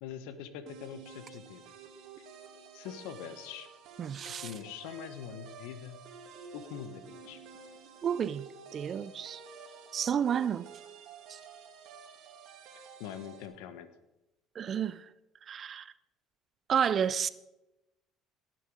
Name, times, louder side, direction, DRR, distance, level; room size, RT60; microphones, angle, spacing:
voice 1, 0.0-1.6 2.7-3.7 4.2-6.0 6.5-7.4 12.7-13.9, left 9 dB, 80° left, 1.2 m, -43 dB
sound 1, 0.7-13.5, right 5 dB, 70° right, 2.3 m, -51 dB
voice 2, 4.0-4.5 8.0-9.4 9.9-10.6 11.3-11.4 14.6-15.1 15.5-15.9 16.7-17.3, right 8 dB, 45° right, 0.5 m, -31 dB
17.5 x 7.8 x 4.9 m
supercardioid pair, 75°, 0 cm